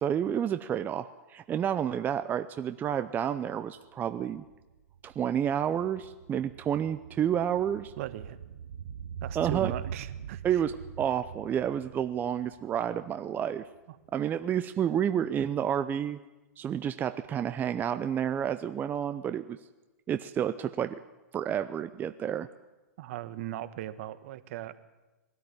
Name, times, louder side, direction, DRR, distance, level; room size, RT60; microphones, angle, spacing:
voice 1, 0.0-4.4 5.0-7.9 9.3-9.7 10.4-13.6 14.1-16.2 16.6-19.6 20.1-21.0 21.3-22.5, right 9 dB, 20° right, 11 dB, 0.6 m, -30 dB
sound 1, 3.1-3.2 3.4-13.8 14.0-14.1, right 8 dB, 70° right, 0.9 m, -43 dB
voice 2, 8.0-8.4 9.2-10.4 23.0-24.8, right 14 dB, 55° right, 13 dB, 1.2 m, -38 dB
21.0 x 13.5 x 9.7 m, 1.1 s
hypercardioid pair, 125°, 9 cm